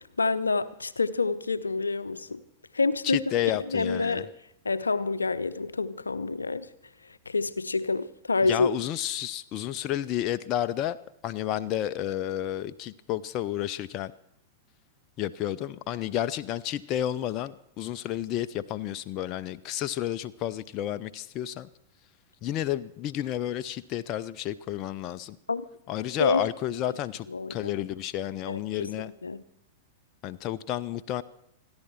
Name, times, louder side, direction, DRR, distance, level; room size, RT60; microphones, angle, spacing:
voice 1, 0.2-2.4 2.7-3.2 3.7-4.3 4.6-6.7 7.3-8.7 25.5-25.6 26.2-26.4 27.3-27.7 28.5-28.9 29.2-29.4, left 3 dB, 75° left, 0.6 m, -27 dB
voice 2, 3.0-4.2 8.4-11.0 11.2-14.1 15.2-21.7 22.4-25.4 25.9-29.1 30.2-31.2, left 12 dB, 35° left, 0.5 m, -31 dB
29.0 x 10.5 x 4.4 m
figure-of-eight pair, 95°, 0 cm